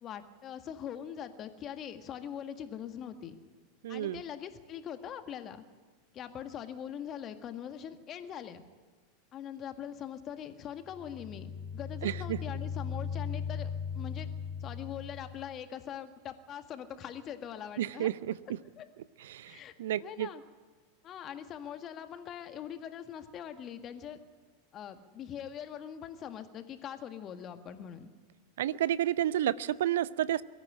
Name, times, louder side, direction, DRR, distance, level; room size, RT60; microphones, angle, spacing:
voice 1, 0.0-3.4 3.9-5.6 6.1-8.6 9.3-14.3 14.6-18.1 18.8-18.9 19.4-19.7 20.0-20.4 21.0-24.2 24.7-28.1, left 9 dB, 35° left, 8 dB, 1.8 m, -42 dB
voice 2, 3.8-4.2 12.0-12.4 17.8-18.6 19.2-20.3 28.6-30.4, right 12 dB, 65° right, 18 dB, 0.6 m, -31 dB
sound 1, 10.8-15.6, left 6 dB, 5° right, 7.1 m, -38 dB
22.5 x 14.0 x 9.9 m, 1.4 s
figure-of-eight pair, 85°, 0 cm